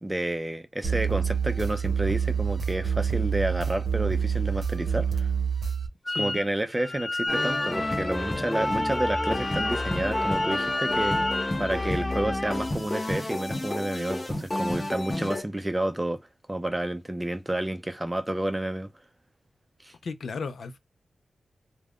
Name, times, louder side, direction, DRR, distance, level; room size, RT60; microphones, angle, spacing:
voice 1, 0.0-5.3 6.1-11.2 11.6-16.2 16.5-18.9 19.8-19.9, right 1 dB, 15° right, 0.5 m, -30 dB
sound 1, 0.8-5.9, right 7 dB, 60° right, 0.7 m, -27 dB
voice 2, 6.1-6.4 20.0-20.8, left 4 dB, 75° left, 0.4 m, -35 dB
Wind instrument woodwind instrument, 6.1-6.5 6.7-11.5, left 2 dB, 5° left, 1.1 m, -33 dB
sound 2, 7.3-15.4, left 1 dB, 25° left, 0.8 m, -29 dB
2.4 x 2.2 x 3.4 m
cardioid pair, 75°, 0 cm